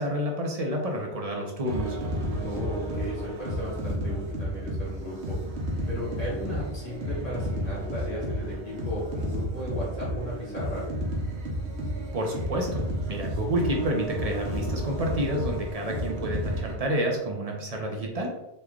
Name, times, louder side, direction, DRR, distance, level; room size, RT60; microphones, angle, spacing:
voice 1, 0.0-2.0 12.1-18.3, equal, 45° right, 1 dB, 0.5 m, -29 dB
sound 1, 1.6-16.8, right 1 dB, 85° right, 1.1 m, -32 dB
voice 2, 2.4-5.4 5.9-10.8, left 1 dB, 40° left, -6 dB, 1.4 m, -36 dB
3.1 x 2.2 x 3.6 m, 0.89 s
omnidirectional pair, 1.1 m